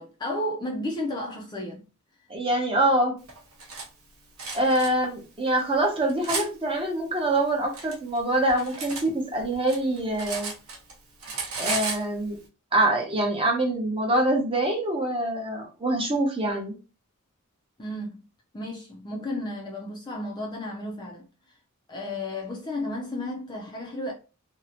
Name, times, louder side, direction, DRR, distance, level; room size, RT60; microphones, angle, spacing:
voice 1, 0.0-1.9 17.8-18.2 18.5-21.3 21.9-24.1, left 1 dB, 20° left, 0.4 m, -33 dB
voice 2, 2.3-3.1 4.5-10.5 11.6-12.4 12.7-16.8, right 1 dB, 25° right, 0.8 m, -25 dB
Cutlery silverware, 3.3-3.9 4.4-4.9 5.6-6.5 7.4-9.1 9.4-10.9 11.2-12.0, right 4 dB, 75° right, 0.8 m, -33 dB
2.7 x 2.1 x 2.8 m
head